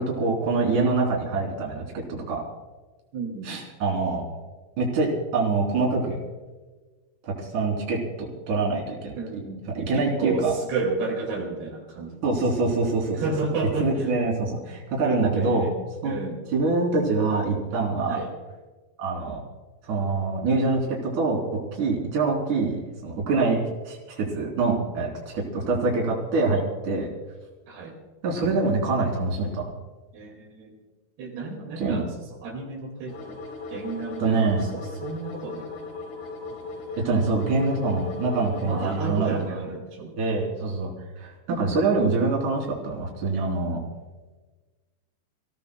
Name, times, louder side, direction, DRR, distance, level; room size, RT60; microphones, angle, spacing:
voice 1, 0.0-2.4 3.4-4.2 4.8-6.2 7.3-10.5 12.2-13.2 13.8-15.7 16.0-16.2 16.5-18.2 19.0-19.4 19.8-21.4 21.7-23.6 23.8-27.1 28.2-29.6 31.8-32.0 34.2-34.7 37.0-39.5 40.2-40.9 41.2-43.8, right 3 dB, 50° right, -2 dB, 4.5 m, -25 dB
voice 2, 3.1-3.6 9.2-9.7 9.9-12.2 13.2-14.1 15.4-15.7 16.0-16.4 18.1-18.3 27.7-28.0 30.1-30.8 31.2-32.1 32.4-33.4 33.7-34.4 34.7-35.7 38.6-40.2 41.5-41.7, right 3 dB, 80° right, -1 dB, 4.2 m, -31 dB
sound 1, 33.1-39.5, left 3 dB, 65° left, 4.1 m, -38 dB
29.0 x 16.5 x 2.2 m, 1.3 s
omnidirectional pair, 4.6 m